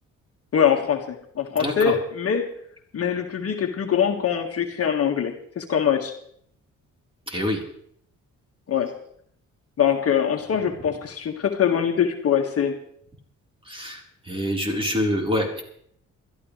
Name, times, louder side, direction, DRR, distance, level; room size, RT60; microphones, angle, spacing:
voice 1, 0.5-2.5 2.9-6.1 8.7-8.9 9.8-12.8, left 8 dB, 50° left, 3 dB, 1.8 m, -23 dB
voice 2, 1.6-1.9 7.3-7.6 13.7-15.6, left 1 dB, 15° right, 0 dB, 4.1 m, -26 dB
22.0 x 13.0 x 3.3 m, 0.67 s
cardioid pair, 90°, 30 cm